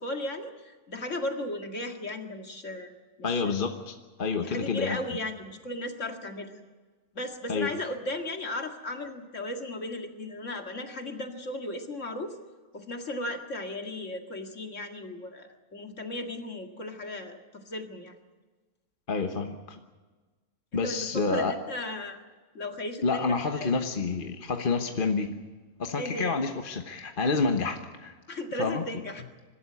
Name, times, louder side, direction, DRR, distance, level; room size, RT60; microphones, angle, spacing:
voice 1, 0.0-2.9 3.3-3.5 4.3-6.6 7.1-12.3 12.7-18.1 20.7-22.2 22.5-23.7 26.0-26.4 28.3-29.2, left 1 dB, 55° left, 4 dB, 2.4 m, -36 dB
voice 2, 3.2-5.0 7.5-7.7 19.1-19.8 20.7-21.6 23.0-25.3 25.8-28.1 28.6-28.8, left 4 dB, 40° left, 5 dB, 1.3 m, -28 dB
25.0 x 13.0 x 9.8 m, 1.3 s
omnidirectional pair, 1.6 m